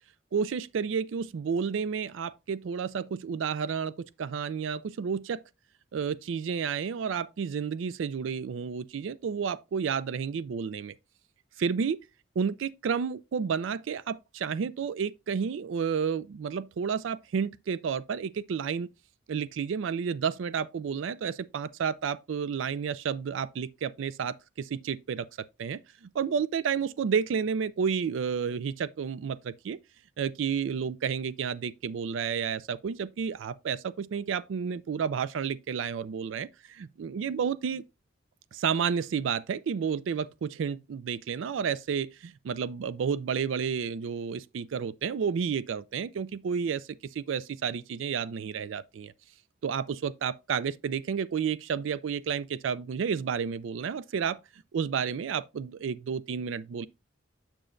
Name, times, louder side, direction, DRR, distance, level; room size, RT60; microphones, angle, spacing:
voice 1, 0.3-5.4 5.9-10.9 11.6-12.0 12.4-18.9 19.3-25.3 25.6-29.8 30.2-36.5 36.8-37.8 38.5-49.1 49.6-54.4 54.7-56.9, right 6 dB, 80° right, 0.4 m, -31 dB
7.4 x 6.9 x 2.5 m
head